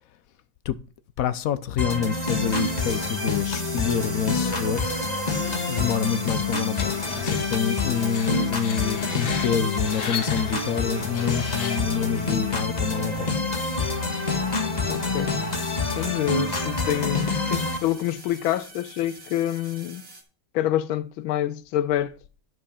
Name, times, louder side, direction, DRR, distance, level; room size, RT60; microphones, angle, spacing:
voice 1, 1.2-4.9 5.7-6.9 7.2-13.4, left 7 dB, 70° left, 0.8 m, -27 dB
sound 1, 1.8-17.8, left 3 dB, 20° left, 1.5 m, -27 dB
sound 2, 2.1-20.2, right 3 dB, 35° right, 2.5 m, -43 dB
Screech, 6.8-12.0, left 6 dB, 55° left, 1.6 m, -36 dB
voice 2, 14.8-15.4 15.8-20.0 20.5-22.2, left 12 dB, 90° left, 1.5 m, -27 dB
11.0 x 6.2 x 5.6 m
omnidirectional pair, 2.2 m